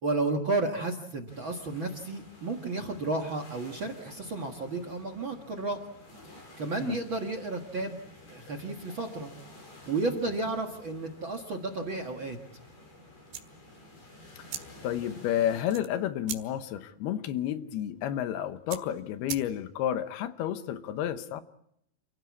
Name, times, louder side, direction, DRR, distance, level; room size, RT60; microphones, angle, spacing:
voice 1, 0.0-5.8 6.2-8.0 8.3-9.3 9.9-12.4, right 3 dB, 55° right, 1.4 m, -32 dB
sound 1, 1.3-15.6, left 1 dB, 50° left, 8.2 m, -52 dB
sound 2, 13.2-19.9, right 10 dB, 90° right, 3.7 m, -44 dB
voice 2, 14.8-21.4, left 11 dB, 75° left, 2.9 m, -31 dB
28.5 x 16.0 x 8.5 m
omnidirectional pair, 4.8 m